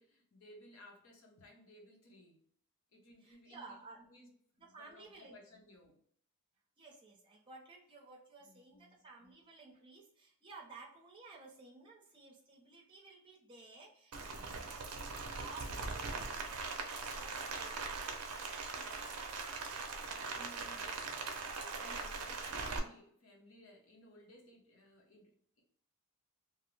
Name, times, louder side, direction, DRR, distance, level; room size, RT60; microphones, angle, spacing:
voice 1, 0.0-2.4 2.9-4.3 4.6-6.0 8.4-9.4 14.3-14.7 20.3-21.0 21.8-25.6, left 1 dB, 65° left, -1 dB, 0.8 m, -59 dB
voice 2, 3.2-4.0 4.6-5.6 6.8-20.9 21.7-22.2, right 3 dB, 25° right, -1 dB, 0.6 m, -56 dB
Rain, 14.1-22.8, right 4 dB, 85° right, 0.5 m, -41 dB
2.5 x 2.0 x 3.1 m, 0.63 s
head